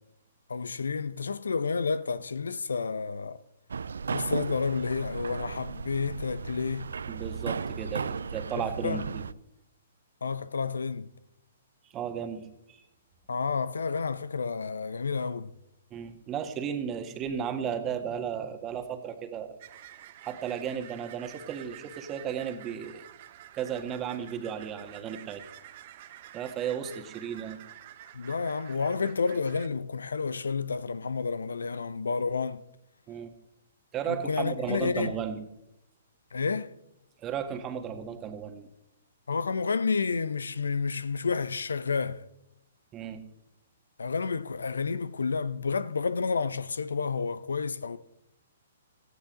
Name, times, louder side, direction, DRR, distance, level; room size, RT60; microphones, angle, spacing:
voice 1, 0.5-3.4 4.1-6.9 8.6-9.0 10.2-11.1 13.3-15.5 28.1-32.6 34.1-35.2 36.3-36.7 39.3-42.2 44.0-48.0, left 5 dB, 70° left, 0.7 m, -30 dB
sound 1, 3.7-9.3, right 5 dB, 65° right, 0.4 m, -35 dB
voice 2, 7.1-9.2 11.9-12.8 15.9-19.6 20.2-23.0 23.5-25.4 26.3-27.6 33.1-33.3 33.9-35.4 37.2-38.7 42.9-43.2, right 8 dB, 20° right, 1.7 m, -34 dB
sound 2, 19.6-29.7, right 12 dB, 45° right, 1.0 m, -49 dB
17.5 x 15.0 x 3.8 m
figure-of-eight pair, 120°, 0 cm